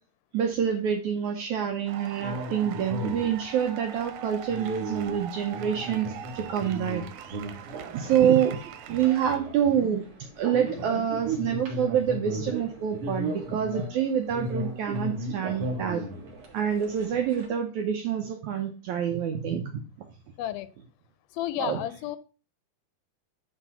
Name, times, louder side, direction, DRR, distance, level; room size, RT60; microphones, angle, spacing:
voice 1, 0.3-7.0 7.9-8.6 8.9-10.1 10.4-16.1 16.5-19.8 21.6-21.8, right 9 dB, 75° right, 1.8 m, -27 dB
sound 1, 1.9-9.4, right 9 dB, 90° right, 2.6 m, -42 dB
sound 2, 2.2-17.5, right 1 dB, 45° right, 2.4 m, -36 dB
voice 2, 21.3-22.2, left 12 dB, 85° left, 2.4 m, -31 dB
10.0 x 3.9 x 5.6 m
omnidirectional pair, 4.3 m